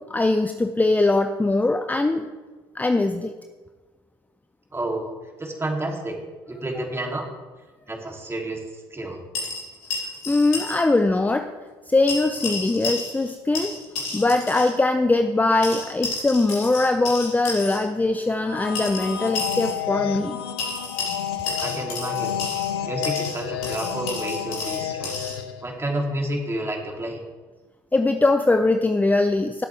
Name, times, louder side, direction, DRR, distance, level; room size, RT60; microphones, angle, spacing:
voice 1, 0.0-2.3 2.7-3.3 10.3-11.5 11.9-13.7 14.1-20.4 27.9-29.6, left 2 dB, 15° left, 7 dB, 0.7 m, -21 dB
voice 2, 4.7-5.1 5.4-6.2 6.5-7.3 7.9-9.2 21.6-22.3 22.9-25.3 25.6-27.2, right 1 dB, 20° right, 1 dB, 2.9 m, -30 dB
sound 1, 9.3-10.8 11.1-11.2 12.1-13.3 13.6-14.7 15.6-17.8 18.8-19.8 20.6-22.7 23.0-25.4, left 3 dB, 70° left, 4.1 m, -31 dB
sound 2, 18.3-25.7, left 10 dB, 85° left, 0.7 m, -30 dB
18.0 x 8.1 x 3.4 m, 1.3 s
hypercardioid pair, 55°, 13 cm